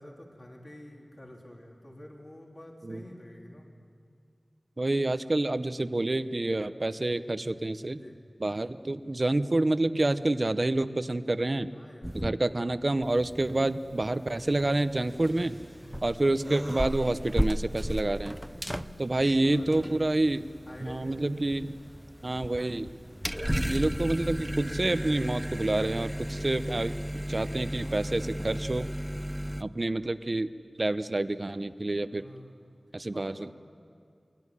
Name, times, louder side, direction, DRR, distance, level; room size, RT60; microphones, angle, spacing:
voice 1, 0.0-3.7 7.9-8.1 11.7-12.2 15.8-16.2 18.5-18.8 19.2-20.0 20.6-21.2 27.8-28.7 32.1-32.7 33.1-33.5, left 1 dB, 40° left, -1 dB, 3.4 m, -48 dB
voice 2, 4.8-8.0 8.4-11.7 12.1-15.6 16.0-18.4 19.0-20.5 20.8-21.7 22.2-22.9 23.7-26.9 27.3-28.9 29.6-30.5 30.8-32.2 32.9-33.5, right 2 dB, 45° right, 12 dB, 0.8 m, -28 dB
sound 1, 12.0-12.8 13.0-29.6, equal, 5° right, 0.5 m, -35 dB
23.5 x 17.0 x 9.9 m, 2.3 s
wide cardioid pair, 60°, 0 cm